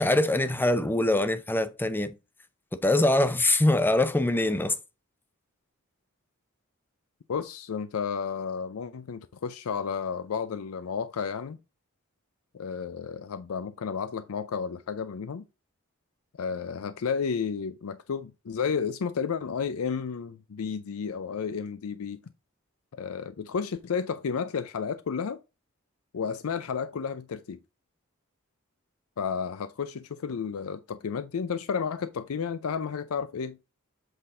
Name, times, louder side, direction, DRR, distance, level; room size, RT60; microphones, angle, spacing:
voice 1, 0.0-2.1 2.7-4.7, left 1 dB, 10° left, 0.6 m, -23 dB
voice 2, 7.3-11.6 12.5-15.4 16.4-22.2 23.0-25.4 26.1-27.6 29.2-33.6, left 6 dB, 85° left, 0.5 m, -32 dB
7.8 x 4.1 x 3.7 m
head